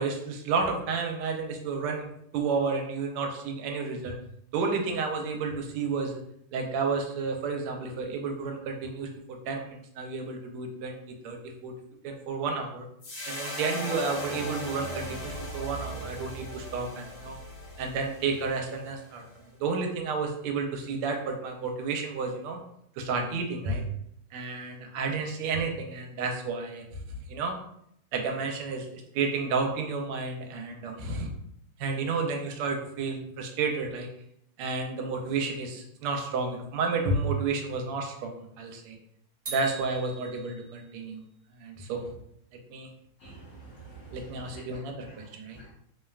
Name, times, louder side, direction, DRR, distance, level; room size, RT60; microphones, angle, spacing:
voice 1, 0.0-4.2 4.5-6.2 6.5-11.7 12.0-12.9 13.3-17.4 17.8-19.2 19.6-22.6 22.9-23.8 24.3-27.0 27.3-27.6 28.1-31.3 31.8-34.1 34.6-39.0 39.5-41.2 41.6-42.1 42.7-42.9 44.1-45.6, right 4 dB, 85° right, 3 dB, 1.5 m, -31 dB
sound 1, 13.0-19.4, equal, 65° left, 1.5 m, -38 dB
sound 2, 39.5-41.0, right 3 dB, 30° right, 0.8 m, -42 dB
voice 2, 43.2-44.6 45.5-45.7, right 3 dB, 85° left, -4 dB, 0.9 m, -47 dB
3.5 x 2.1 x 2.3 m, 0.72 s
omnidirectional pair, 2.4 m